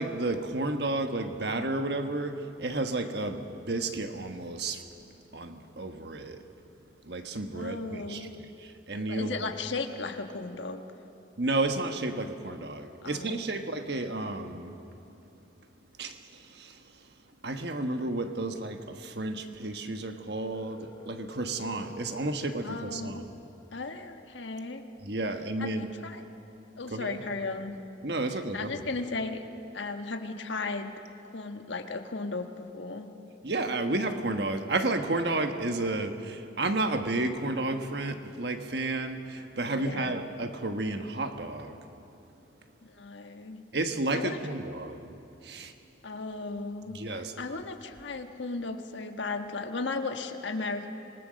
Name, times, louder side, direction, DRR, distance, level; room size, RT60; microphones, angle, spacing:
voice 1, 0.0-4.8 5.3-6.4 7.0-8.3 8.6-9.5 11.4-14.8 16.0-16.8 17.4-23.2 25.0-25.9 26.9-27.2 28.0-28.7 33.4-41.8 43.7-45.1 45.4-45.7 46.9-47.3, right 2 dB, 60° right, 6 dB, 1.3 m, -32 dB
voice 2, 7.5-8.4 9.0-10.8 13.0-13.5 22.6-23.2 23.7-24.8 25.6-26.2 26.8-27.8 28.5-29.4 29.7-30.9 31.3-33.1 39.7-40.1 42.8-43.6 44.1-44.4 46.0-50.9, left 3 dB, 85° left, 6 dB, 1.4 m, -36 dB
Telephone, 20.5-22.5, left 3 dB, 25° left, 1.0 m, -48 dB
26.5 x 19.5 x 6.4 m, 2.8 s
head